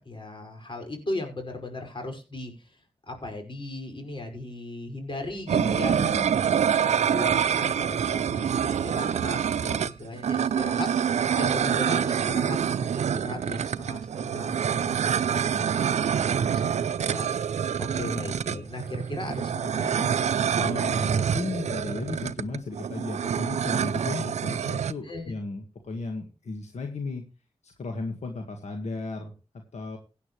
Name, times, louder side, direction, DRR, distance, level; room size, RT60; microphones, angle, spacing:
voice 1, 0.0-2.8 3.1-6.0 6.5-15.0 15.3-16.7 17.0-17.3 17.8-20.3 25.0-25.3, left 2 dB, 45° left, 4 dB, 5.4 m, -37 dB
voice 2, 5.5-6.5 20.5-27.2 27.6-29.3 29.7-30.0, left 3 dB, 80° left, 4 dB, 1.7 m, -35 dB
sound 1, 5.5-24.9, right 8 dB, 85° right, 0.5 m, -26 dB
16.5 x 9.8 x 3.2 m, 0.31 s
cardioid pair, 50°, 11 cm